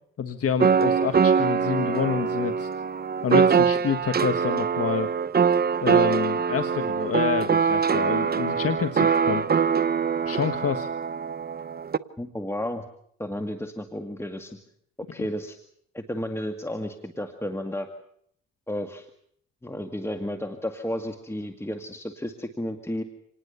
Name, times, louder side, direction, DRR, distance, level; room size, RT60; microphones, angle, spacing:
voice 1, 0.2-2.7 3.2-5.1 5.8-9.4 10.2-10.9 15.2-15.3, left 7 dB, 50° left, 9 dB, 1.5 m, -28 dB
sound 1, 0.6-12.0, right 6 dB, 30° right, 0.9 m, -23 dB
voice 2, 12.2-12.8 13.2-14.6 15.1-15.6 15.9-17.9 18.7-19.1 19.6-23.0, left 1 dB, 10° left, 6 dB, 2.0 m, -32 dB
27.0 x 19.5 x 7.0 m, 0.68 s
cardioid pair, 90°, 30 cm